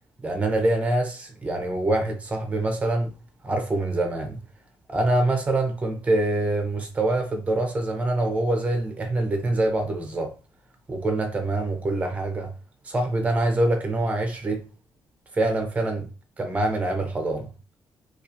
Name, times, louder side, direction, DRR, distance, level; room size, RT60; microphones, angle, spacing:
voice 1, 0.2-3.1 3.4-4.4 4.9-10.3 10.9-12.5 12.8-14.6 15.3-16.1 16.4-17.5, right 2 dB, 20° right, 0.6 m, -25 dB
2.4 x 2.3 x 2.7 m
cardioid pair, 125°, 7 cm